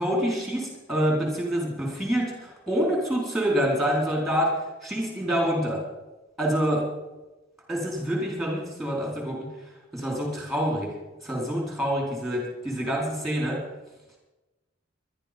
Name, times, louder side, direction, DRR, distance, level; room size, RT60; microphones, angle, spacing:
voice 1, 0.0-5.9 6.4-6.8 7.7-9.5 9.9-10.9 11.2-13.6, equal, ahead, -1 dB, 4.5 m, -26 dB
21.0 x 11.5 x 5.3 m, 1.1 s
head